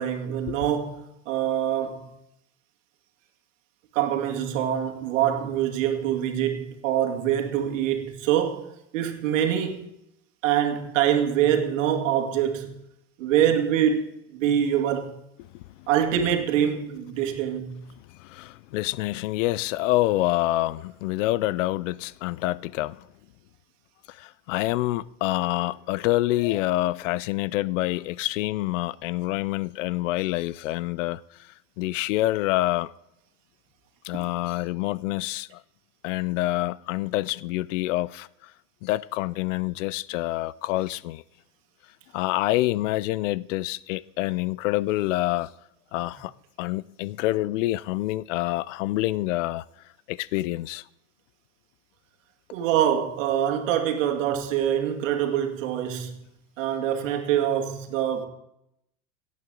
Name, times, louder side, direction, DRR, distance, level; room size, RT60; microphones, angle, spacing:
voice 1, 0.0-2.1 3.9-9.9 10.4-12.8 13.2-15.2 15.9-17.9 34.1-34.3 52.5-56.2 56.6-58.3, right 10 dB, 80° right, 2.2 m, -25 dB
voice 2, 15.5-15.9 18.2-23.0 24.1-31.2 31.8-32.9 34.0-35.6 36.0-38.3 38.8-41.2 42.1-45.5 45.9-46.3 46.6-49.6 50.1-50.8, left 17 dB, 75° left, 0.6 m, -27 dB
17.0 x 8.8 x 3.8 m
supercardioid pair, 110°, 38 cm